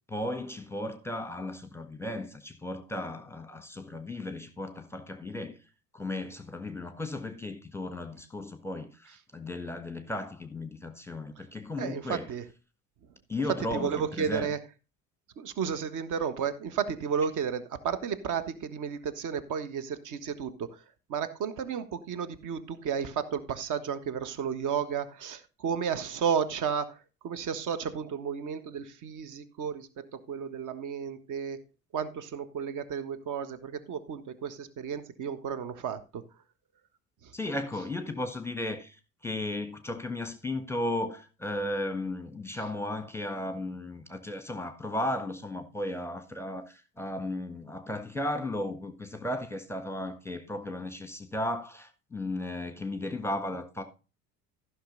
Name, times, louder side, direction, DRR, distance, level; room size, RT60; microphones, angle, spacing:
voice 1, 0.1-12.3 13.3-14.5 37.3-53.8, left 1 dB, 5° left, 1.5 m, -35 dB
voice 2, 11.8-12.4 13.0-13.1 13.7-14.6 15.4-36.4 37.2-37.3, right 7 dB, 40° right, 1.5 m, -33 dB
15.0 x 6.3 x 4.0 m
figure-of-eight pair, 65°, 46 cm